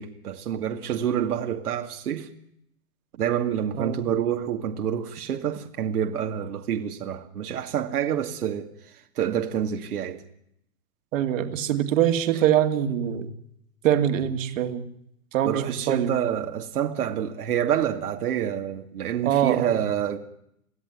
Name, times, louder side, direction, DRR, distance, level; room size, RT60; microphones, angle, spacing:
voice 1, 0.0-2.3 3.2-10.2 15.4-20.2, right 9 dB, 70° right, 2.3 m, -27 dB
voice 2, 11.1-13.3 13.8-14.8 15.3-16.1 19.2-19.8, right 10 dB, 55° right, 2.5 m, -23 dB
24.0 x 16.0 x 9.6 m
hypercardioid pair, 150°, 46 cm